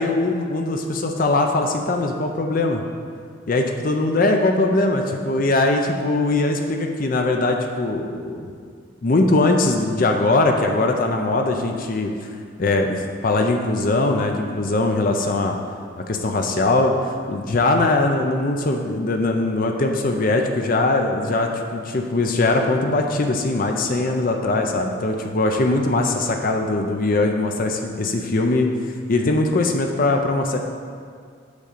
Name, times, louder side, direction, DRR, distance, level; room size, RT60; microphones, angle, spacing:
voice 1, 0.0-2.8 3.5-8.5 9.0-12.1 12.6-15.6 16.1-16.9 17.3-28.7 29.1-30.6, left 2 dB, 45° left, 3 dB, 0.5 m, -21 dB
8.3 x 3.7 x 6.7 m, 2.1 s
head